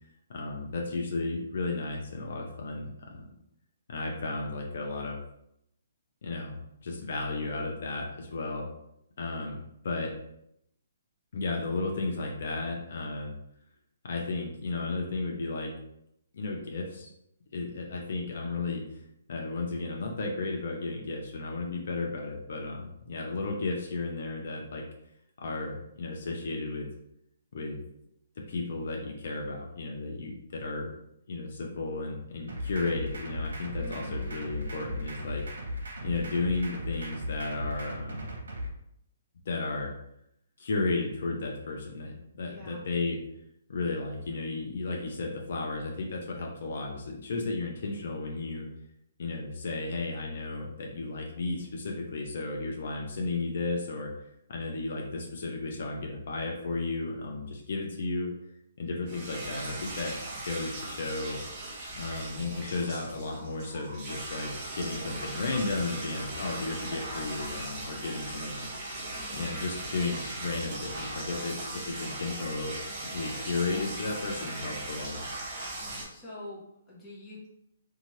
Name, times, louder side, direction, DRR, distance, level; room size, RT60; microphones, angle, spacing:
voice 1, 0.3-3.3 3.9-5.2 6.2-8.7 9.2-9.6 9.8-10.1 11.3-13.3 14.0-15.7 16.3-17.1 17.5-19.0 19.3-24.8 25.4-26.9 27.5-27.8 28.5-30.9 31.3-35.4 36.0-38.3 39.5-39.9 40.6-43.2 43.7-48.7 49.2-54.1 54.5-58.3 58.8-60.2 60.4-61.4 62.0-68.7 69.3-72.8 73.0-75.2, left 3 dB, 60° left, 0 dB, 0.5 m, -34 dB
sound 1, 32.5-38.7, left 1 dB, 90° right, 0.8 m, -37 dB
voice 2, 33.8-34.4 42.5-42.9 69.1-69.6 75.6-77.5, left 1 dB, 10° left, -8 dB, 0.8 m, -46 dB
sound 2, 59.1-76.1, right 1 dB, 25° right, 0.7 m, -38 dB
2.7 x 2.4 x 3.0 m, 0.78 s
hypercardioid pair, 165°, 0 cm